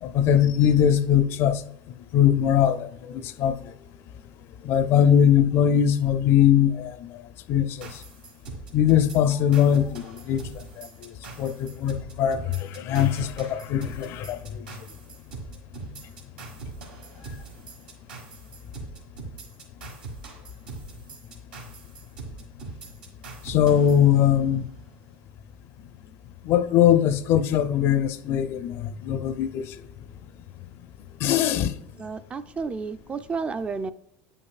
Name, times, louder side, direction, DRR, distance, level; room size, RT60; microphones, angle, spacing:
voice 1, 0.0-1.6 2.1-3.7 4.6-7.2 7.5-8.0 8.7-14.7 23.4-24.7 26.4-29.8 31.2-31.8, left 9 dB, 50° left, 0.4 m, -21 dB
sound 1, 7.8-24.7, right 4 dB, 85° right, 1.4 m, -42 dB
voice 2, 32.0-33.9, right 4 dB, 20° right, 0.3 m, -31 dB
8.3 x 5.4 x 2.4 m
supercardioid pair, 105°, 5 cm